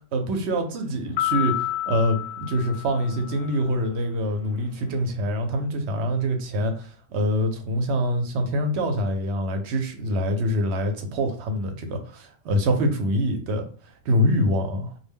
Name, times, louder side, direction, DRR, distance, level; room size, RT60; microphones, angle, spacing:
voice 1, 0.1-13.6 14.1-14.9, equal, 80° right, 5 dB, 0.9 m, -25 dB
sound 1, 1.2-3.7, left 14 dB, 65° left, 0.7 m, -29 dB
2.2 x 2.1 x 3.4 m, 0.41 s
omnidirectional pair, 1.1 m